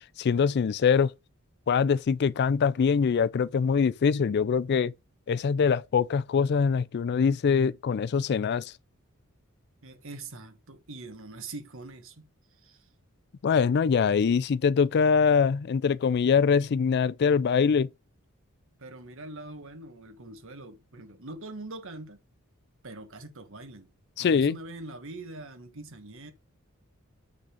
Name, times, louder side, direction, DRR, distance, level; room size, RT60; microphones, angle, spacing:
voice 1, 0.2-1.1 1.7-4.9 5.3-8.7 13.4-17.9 24.2-24.6, left 6 dB, 50° left, 0.4 m, -23 dB
voice 2, 9.8-12.9 18.8-22.2 22.8-23.9 24.2-26.3, right 2 dB, 65° right, 1.5 m, -43 dB
8.8 x 3.9 x 5.0 m
head